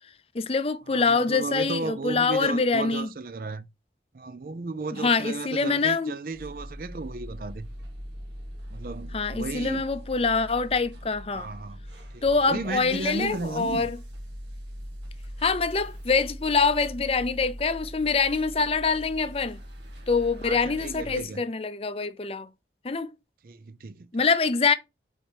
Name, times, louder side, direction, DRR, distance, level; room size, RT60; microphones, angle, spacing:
voice 1, 0.3-3.1 5.0-6.1 9.1-11.5 12.2-14.0 15.4-19.6 20.1-22.5 22.8-23.1 24.1-24.7, left 4 dB, 35° left, 0.5 m, -25 dB
voice 2, 0.9-3.7 4.1-7.7 8.7-9.8 11.3-11.8 12.1-13.9 20.4-21.4 23.4-24.1, right 3 dB, 50° right, 0.5 m, -34 dB
sound 1, 6.3-21.2, equal, 85° right, 1.6 m, -41 dB
4.9 x 4.4 x 4.4 m
head